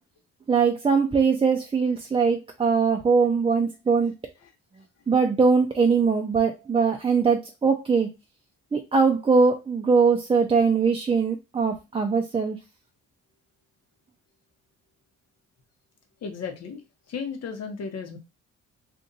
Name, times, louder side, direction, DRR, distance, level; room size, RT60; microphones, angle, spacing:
voice 1, 0.5-4.1 5.1-8.1 8.7-12.6, right 5 dB, 20° right, 2 dB, 0.4 m, -21 dB
voice 2, 16.2-18.2, left 5 dB, 55° left, 5 dB, 0.9 m, -35 dB
2.6 x 2.4 x 3.9 m, 0.25 s
cardioid pair, 90°, 30 cm